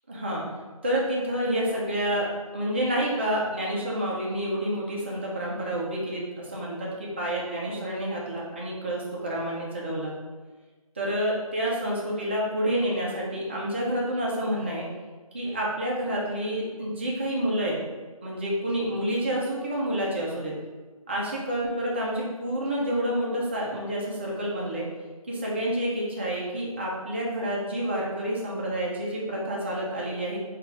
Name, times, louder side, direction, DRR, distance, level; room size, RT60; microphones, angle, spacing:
voice 1, 0.1-0.4 0.8-2.3 2.5-10.1 11.0-14.9 15.3-17.8 18.2-20.5 21.1-24.9 25.3-30.4, equal, 20° right, -4 dB, 0.5 m, -28 dB
4.9 x 2.4 x 3.2 m, 1.3 s
figure-of-eight pair, 160°, 19 cm